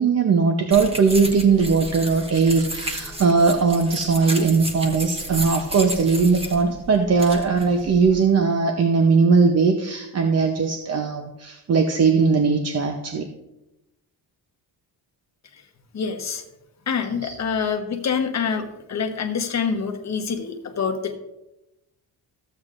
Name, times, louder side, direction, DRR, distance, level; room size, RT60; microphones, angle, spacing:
voice 1, 0.0-13.3 17.2-17.3, right 4 dB, 35° right, 5 dB, 0.7 m, -19 dB
sound 1, 0.7-8.2, equal, 15° right, 1.1 m, -33 dB
voice 2, 15.9-16.4 16.9-21.2, left 6 dB, 40° left, 3 dB, 1.1 m, -26 dB
14.5 x 8.0 x 2.5 m, 0.93 s
cardioid pair, 140°, 44 cm